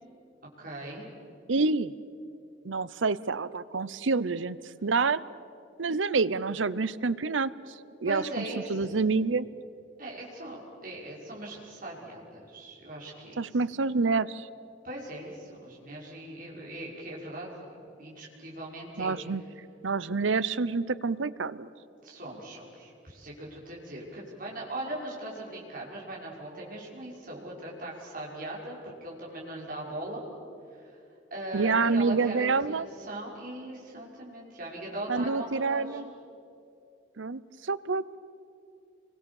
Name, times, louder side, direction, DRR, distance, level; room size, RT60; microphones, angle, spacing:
voice 1, 0.6-1.1 8.0-8.9 10.0-13.4 14.8-19.1 22.0-30.3 30.7-31.0 31.3-36.0, right 1 dB, 45° right, -4 dB, 6.0 m, -40 dB
voice 2, 1.5-1.9 2.6-5.2 5.8-7.5 8.0-9.5 13.4-14.5 19.0-19.4 19.8-21.7 31.5-32.9 35.1-36.1 37.2-38.0, right 4 dB, 85° right, 17 dB, 0.8 m, -27 dB
29.5 x 23.5 x 7.2 m, 2.7 s
head